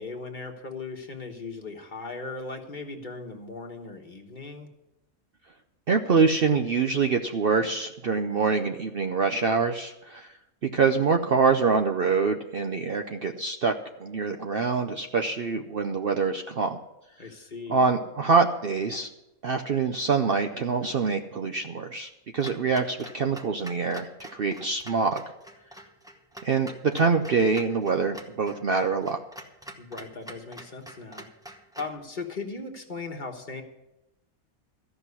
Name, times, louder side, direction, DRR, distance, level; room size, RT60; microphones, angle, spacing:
voice 1, 0.0-4.7 17.2-17.9 29.8-31.3 31.8-33.6, left 3 dB, 35° left, 3 dB, 1.4 m, -38 dB
voice 2, 5.9-10.3 10.7-13.7 14.0-16.8 17.7-19.1 19.4-25.2 26.4-29.2, right 5 dB, 50° right, 5 dB, 0.7 m, -25 dB
Clock, 22.4-32.0, right 1 dB, 5° right, 0.8 m, -45 dB
14.0 x 6.0 x 9.6 m, 0.93 s
omnidirectional pair, 1.5 m